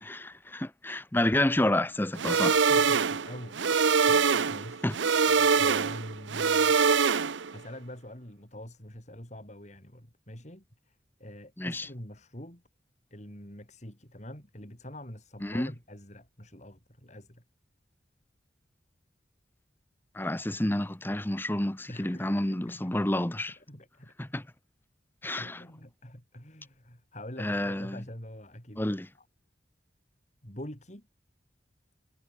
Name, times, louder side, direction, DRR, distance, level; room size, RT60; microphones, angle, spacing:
voice 1, 0.0-2.6 4.8-4.9 11.6-11.9 15.4-15.7 20.2-23.5 24.2-24.4 25.2-25.5 27.4-28.0 28.8-29.1, left 1 dB, 10° left, 0.8 m, -29 dB
sound 1, 2.2-7.6, right 5 dB, 85° right, 0.8 m, -24 dB
voice 2, 2.7-3.7 4.1-4.9 5.3-6.8 7.5-12.6 13.1-17.4 21.9-23.0 23.4-24.1 25.4-29.3 30.4-31.1, left 1 dB, 40° left, 6.6 m, -45 dB
head